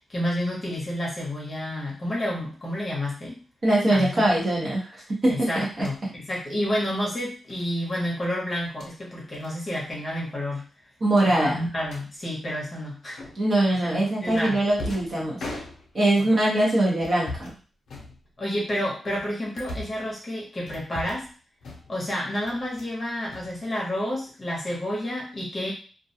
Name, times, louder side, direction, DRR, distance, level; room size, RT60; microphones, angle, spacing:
voice 1, 0.0-3.4 3.9-4.3 5.3-10.7 11.2-13.2 13.9-14.6 16.2-16.3 18.4-21.3 21.9-25.7, left 1 dB, 25° left, -4 dB, 0.8 m, -30 dB
voice 2, 3.6-5.9 11.0-11.6 13.3-15.4 15.9-17.5, right 1 dB, 35° right, -4 dB, 0.8 m, -22 dB
sound 1, 5.7-6.0 7.5-7.7 8.6-8.9 9.3-9.5 9.8-10.0 10.3-10.4 11.1-12.1 13.2-13.6 14.3-16.1 17.0-17.6 17.9-18.6 19.1-20.0 20.7-21.3 21.6-22.1 22.4-23.0 23.3-24.1, left 2 dB, 70° left, 0.6 m, -40 dB
2.3 x 2.2 x 2.7 m, 0.37 s
wide cardioid pair, 180°, 0 cm